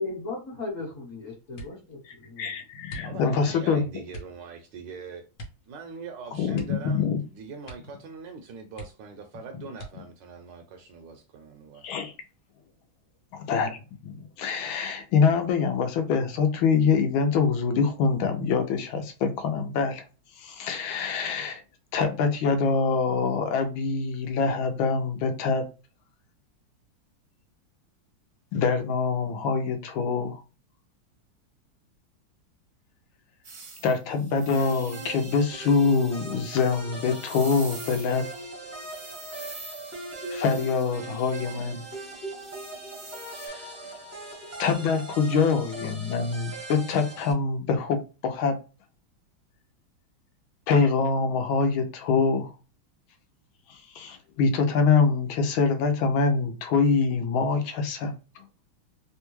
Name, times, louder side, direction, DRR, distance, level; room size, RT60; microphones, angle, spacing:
voice 1, 0.0-2.6, left 3 dB, 45° left, 1.2 m, -36 dB
sound 1, 1.5-2.0 2.8-3.5 4.1-4.4 5.3-5.7 6.0-6.1 6.5-7.3 7.6-8.0 8.3-8.4 8.7-9.3 9.7-10.3 11.0-11.6 12.0-12.4, right 1 dB, 65° left, 1.4 m, -44 dB
voice 2, 2.4-3.9 6.3-7.2 11.8-12.1 13.3-20.0 20.4-21.6 21.9-25.6 28.5-30.4 33.8-38.3 40.3-41.8 43.4-43.6 44.6-48.6 50.7-52.5 53.7-58.1, left 5 dB, 80° left, 1.4 m, -25 dB
voice 3, 3.0-5.2 5.7-12.0, right 5 dB, 75° right, 1.1 m, -42 dB
sound 2, 33.4-38.4 38.8-41.6 42.4-43.5, right 4 dB, 55° right, 0.8 m, -46 dB
sound 3, 34.5-47.3, right 2 dB, 20° right, 0.4 m, -40 dB
3.5 x 2.2 x 3.0 m
omnidirectional pair, 2.2 m